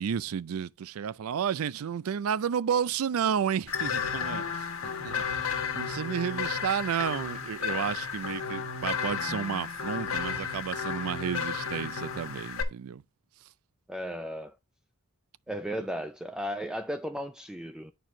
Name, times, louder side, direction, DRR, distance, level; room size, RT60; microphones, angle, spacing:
voice 1, 0.0-13.0, right 8 dB, 80° right, 0.4 m, -32 dB
sound 1, 3.7-12.6, left 6 dB, 75° left, 1.4 m, -33 dB
voice 2, 13.9-14.6 15.5-17.9, equal, 5° right, 0.3 m, -35 dB
9.1 x 4.7 x 3.7 m
head